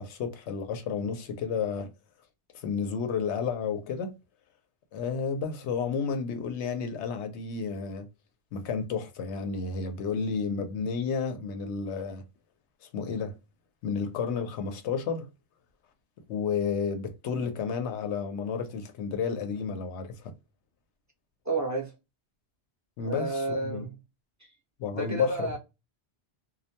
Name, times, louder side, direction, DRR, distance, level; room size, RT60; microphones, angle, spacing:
voice 1, 0.0-1.9 2.5-4.1 4.9-8.1 8.5-12.2 12.9-13.3 13.8-15.3 16.3-20.3 23.0-23.9 24.8-25.5, left 5 dB, 90° left, 0.9 m, -31 dB
voice 2, 21.4-21.9 23.0-24.0 24.4-24.5 24.9-25.6, right 2 dB, 25° right, 0.4 m, -31 dB
2.3 x 2.1 x 2.7 m
omnidirectional pair, 1.1 m